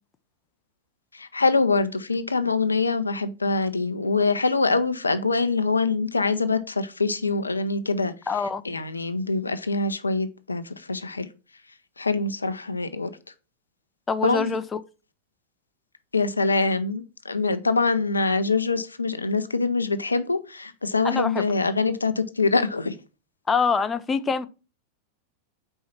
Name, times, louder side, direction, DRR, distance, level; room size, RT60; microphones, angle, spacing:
voice 1, 1.1-8.1 8.6-11.3 12.0-13.1 14.2-14.6 16.1-22.9, left 3 dB, 80° left, 0.5 m, -24 dB
voice 2, 8.3-8.6 14.1-14.8 21.0-21.4 23.5-24.5, left 5 dB, 20° left, 0.4 m, -25 dB
4.6 x 4.4 x 5.8 m
figure-of-eight pair, 90°, 0 cm